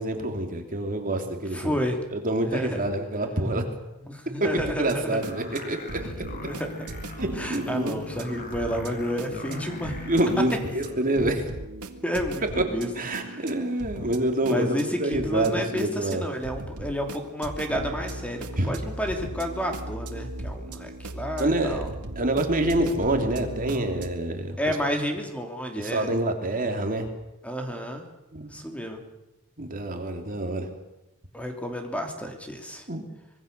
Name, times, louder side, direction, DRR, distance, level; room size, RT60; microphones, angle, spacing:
voice 1, 0.0-1.8 2.1-3.6 4.4-5.8 7.2-8.0 10.0-11.5 12.5-12.6 12.9-16.2 18.6-18.7 21.4-21.8 22.2-24.7 25.8-27.1 28.3-28.5 29.6-30.7 32.9-33.0, right 1 dB, 40° right, 4 dB, 3.1 m, -27 dB
voice 2, 1.5-2.0 2.4-2.8 4.1-5.3 6.5-6.9 7.4-10.0 12.0-12.9 13.2-13.4 14.4-18.4 18.6-21.9 24.6-26.1 27.4-28.1 28.5-29.0 31.3-32.8, equal, 5° left, 3 dB, 3.1 m, -31 dB
sound 1, 4.5-24.1, right 1 dB, 85° right, 2.2 m, -38 dB
sound 2, 5.2-11.0, left 2 dB, 40° left, 5.1 m, -39 dB
25.5 x 21.0 x 6.8 m, 0.97 s
head